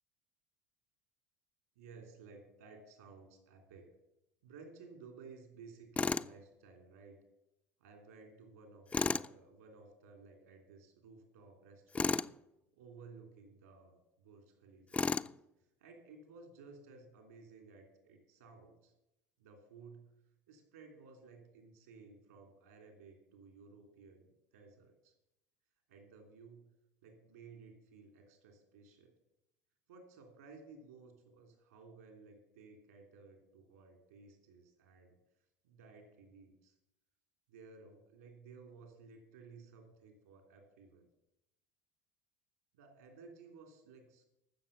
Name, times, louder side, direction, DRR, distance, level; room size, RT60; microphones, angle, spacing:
voice 1, 1.7-3.9 4.4-7.2 7.8-12.2 12.7-15.1 15.8-18.9 19.4-20.1 20.5-25.1 25.9-26.6 27.0-29.1 29.9-35.2 35.6-36.7 37.5-41.1 42.7-44.2, right 4 dB, 80° right, 4 dB, 3.2 m, -56 dB
Tools, 6.0-6.3 8.9-9.3 11.9-12.3 14.9-15.3, left 4 dB, 15° left, 0.4 m, -33 dB
14.5 x 6.6 x 7.0 m, 0.90 s
hypercardioid pair, 75°, 8 cm